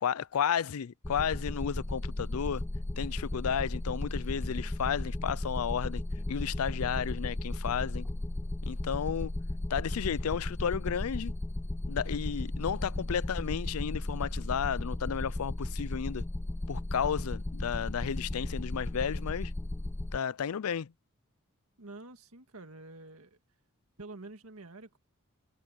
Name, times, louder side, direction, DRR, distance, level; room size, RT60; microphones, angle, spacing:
voice 1, 0.0-2.6 3.0-6.0 6.3-8.1 8.6-9.4 9.7-11.3 11.9-16.2 16.7-19.5 20.1-20.9, left 7 dB, 85° left, 0.4 m, -33 dB
sound 1, 1.0-20.2, left 1 dB, 10° left, 0.3 m, -35 dB
voice 2, 21.8-23.4 24.0-25.0, right 2 dB, 85° right, 1.9 m, -48 dB
head